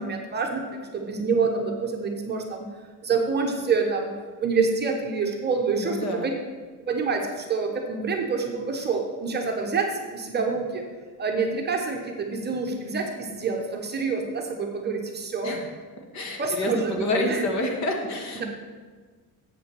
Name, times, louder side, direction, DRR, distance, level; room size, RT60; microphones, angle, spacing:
voice 1, 0.0-2.6 3.0-4.1 4.4-6.3 6.9-10.8 11.2-15.6 16.4-17.5 18.3-18.4, right 4 dB, 30° right, 2 dB, 0.8 m, -27 dB
voice 2, 5.8-6.3 15.4-15.7 16.1-18.5, left 1 dB, 50° left, 2 dB, 1.5 m, -28 dB
7.6 x 5.6 x 6.7 m, 1.5 s
cardioid pair, 160°, 37 cm